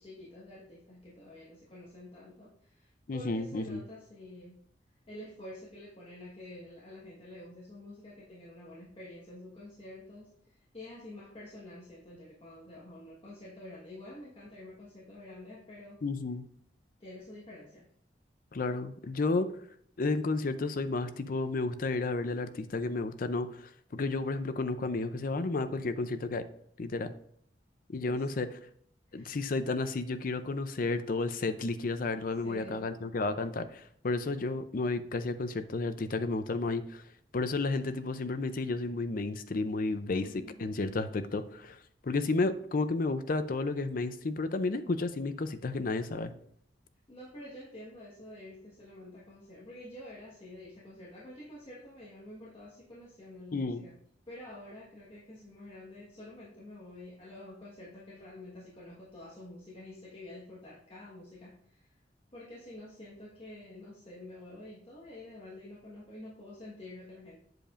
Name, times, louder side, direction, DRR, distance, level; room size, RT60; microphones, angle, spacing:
voice 1, 0.0-4.6 5.1-16.0 17.0-17.9 28.0-28.3 29.1-29.3 32.4-32.9 40.2-40.7 47.1-53.9 54.3-62.0 62.3-67.4, left 1 dB, 30° left, -7 dB, 1.4 m, -48 dB
voice 2, 3.1-3.8 16.0-16.5 18.5-19.5 20.0-26.4 26.8-27.1 27.9-28.5 29.1-37.0 37.3-40.3 40.6-41.8 42.0-46.3 53.5-53.8, left 3 dB, 50° left, 11 dB, 0.5 m, -32 dB
7.7 x 6.8 x 2.5 m, 0.66 s
head